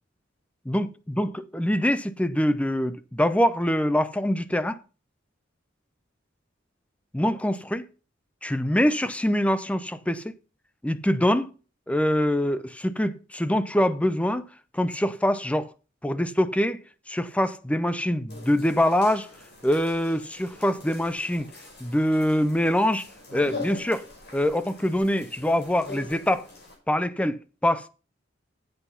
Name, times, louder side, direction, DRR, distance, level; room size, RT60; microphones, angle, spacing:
voice 1, 1.2-4.8 7.1-7.9 8.4-10.3 10.8-11.5 11.9-14.5 14.7-15.7 16.0-16.8 17.1-19.3 19.6-21.5 21.8-23.1 23.3-24.0 24.3-26.5 26.9-27.9, left 1 dB, 5° left, 0.5 m, -24 dB
sound 1, 18.3-26.8, left 3 dB, 60° left, 5.8 m, -43 dB
8.1 x 7.9 x 5.6 m
head